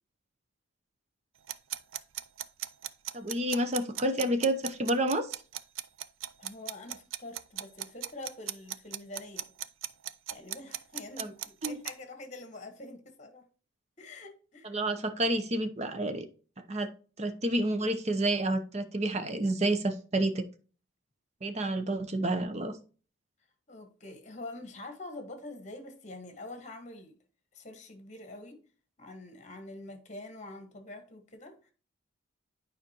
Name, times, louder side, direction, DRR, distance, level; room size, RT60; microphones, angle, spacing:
sound 1, 1.5-11.9, right 12 dB, 80° right, 0.4 m, -37 dB
voice 1, 3.1-5.4 11.2-11.3 11.6-11.8 14.6-16.2 16.7-16.9 17.2-20.4 21.4-22.7, right 1 dB, 35° right, 0.7 m, -29 dB
voice 2, 6.4-9.5 10.3-13.5 14.0-14.8 23.7-27.2 27.5-28.6 29.0-31.7, left 2 dB, 35° left, 1.4 m, -45 dB
9.3 x 5.0 x 2.9 m
head